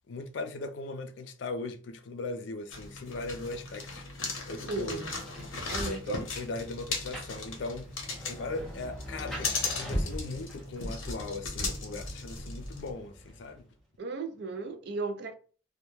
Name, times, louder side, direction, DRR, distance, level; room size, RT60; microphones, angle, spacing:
voice 1, 0.1-4.1 4.5-5.0 5.8-7.9 8.3-13.6, left 3 dB, 60° left, 0.3 m, -38 dB
sound 1, 2.7-12.9, left 3 dB, 75° left, 0.7 m, -37 dB
Rain, 4.7-13.8, equal, ahead, 0.5 m, -42 dB
voice 2, 4.7-5.1 5.7-6.2 14.0-15.3, right 3 dB, 55° right, 0.4 m, -35 dB
2.2 x 2.0 x 3.0 m
head